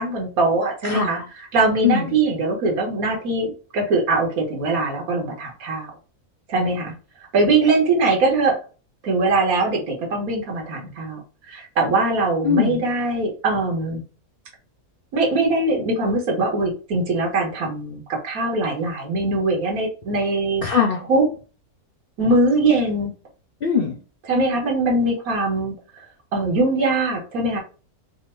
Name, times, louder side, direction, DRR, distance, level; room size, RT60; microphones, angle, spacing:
voice 1, 0.0-3.5 3.7-5.9 6.5-6.9 7.3-8.6 9.0-14.0 15.1-20.6 21.1-21.2 22.2-23.1 24.3-26.1 26.3-27.6, right 2 dB, 75° right, 0 dB, 1.6 m, -21 dB
voice 2, 0.8-1.2 1.8-2.2 12.4-12.8 20.6-21.0 23.6-24.0, left 7 dB, 60° left, 1 dB, 0.5 m, -21 dB
3.6 x 2.1 x 4.3 m, 0.35 s
omnidirectional pair, 1.6 m